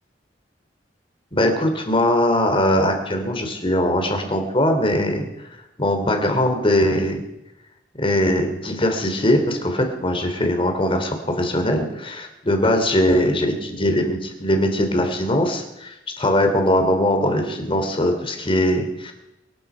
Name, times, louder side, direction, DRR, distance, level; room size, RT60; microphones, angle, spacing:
voice 1, 1.3-5.3 5.8-7.2 8.0-19.1, left 1 dB, 30° left, 5 dB, 3.0 m, -21 dB
25.0 x 11.0 x 5.0 m, 0.92 s
head